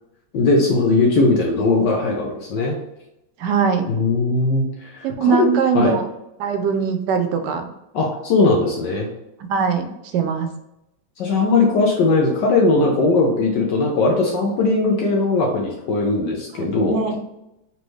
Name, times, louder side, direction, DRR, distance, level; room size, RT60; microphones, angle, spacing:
voice 1, 0.3-2.8 3.9-5.5 5.7-6.0 7.9-9.1 11.2-17.0, left 3 dB, 70° left, 0 dB, 1.2 m, -19 dB
voice 2, 3.4-3.8 5.0-6.1 6.4-7.6 9.4-9.9 10.1-10.5 16.5-17.3, right 6 dB, 75° right, 7 dB, 1.1 m, -21 dB
4.1 x 3.3 x 3.1 m, 0.88 s
omnidirectional pair, 2.1 m